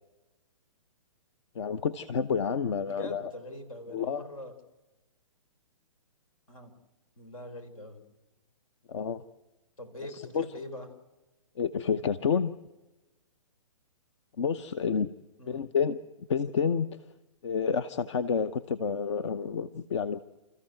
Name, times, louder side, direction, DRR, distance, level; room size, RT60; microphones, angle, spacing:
voice 1, 1.5-3.3 3.9-4.2 8.9-9.2 10.1-10.4 11.6-12.5 14.4-15.1 15.5-16.0 16.3-16.9 17.4-20.2, left 6 dB, 55° left, 14 dB, 0.9 m, -29 dB
voice 2, 2.9-4.5 6.5-6.7 7.2-8.0 9.8-10.9 15.4-15.6, left 1 dB, 80° left, 9 dB, 4.5 m, -43 dB
29.5 x 14.5 x 7.8 m, 1.1 s
hypercardioid pair, 130°, 18 cm